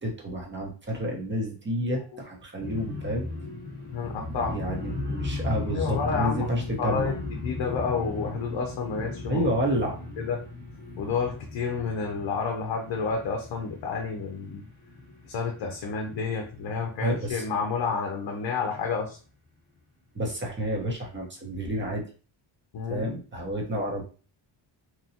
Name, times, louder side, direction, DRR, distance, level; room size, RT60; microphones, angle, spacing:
voice 1, 0.0-3.3 4.5-7.1 9.3-10.0 17.0-17.4 20.1-22.0 22.9-24.0, equal, 25° right, -1 dB, 0.9 m, -30 dB
sound 1, 2.6-16.5 16.9-17.3 17.6-17.9, left 2 dB, 20° left, 1.2 m, -36 dB
voice 2, 3.9-4.6 5.7-6.5 6.8-9.5 10.2-10.4 11.0-14.7 15.2-19.2 22.7-23.1, left 5 dB, 60° left, 2 dB, 0.7 m, -30 dB
3.0 x 2.2 x 2.8 m, 0.37 s
cardioid pair, 105°, 46 cm